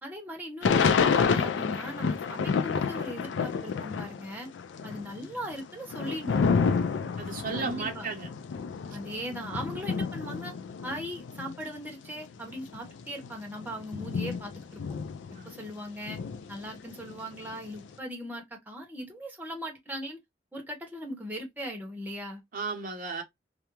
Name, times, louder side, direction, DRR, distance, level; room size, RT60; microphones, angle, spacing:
voice 1, 0.0-4.5 4.8-6.4 7.6-8.1 8.9-10.5 10.8-14.8 15.5-16.2 16.5-20.2 20.5-22.4, equal, 10° right, 0.8 m, -39 dB
Thunder / Rain, 0.6-4.3 4.6-11.6 12.2-12.3 12.5-15.7 16.1-17.8, left 5 dB, 80° left, 0.4 m, -29 dB
voice 2, 7.2-8.3 15.3-15.5 22.5-23.2, right 4 dB, 50° right, 0.7 m, -34 dB
2.4 x 2.1 x 2.8 m
head